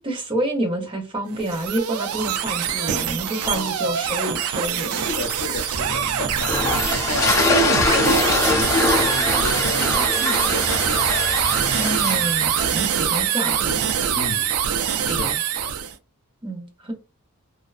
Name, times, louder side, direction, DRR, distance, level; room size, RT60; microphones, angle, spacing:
voice 1, 0.1-5.1 11.8-13.8 15.1-15.4 16.4-16.9, right 1 dB, 25° right, 0.6 m, -28 dB
sound 1, 1.3-15.9, right 8 dB, 75° right, 0.4 m, -23 dB
voice 2, 4.9-6.6 7.1-11.4 11.8-11.9 14.1-14.5 15.1-15.3 15.6-15.7, left 3 dB, 75° left, 0.6 m, -31 dB
sound 2, 5.7-12.5, equal, 55° right, 0.8 m, -36 dB
sound 3, 6.4-13.7, left 3 dB, 15° left, 0.4 m, -24 dB
2.5 x 2.3 x 2.4 m
head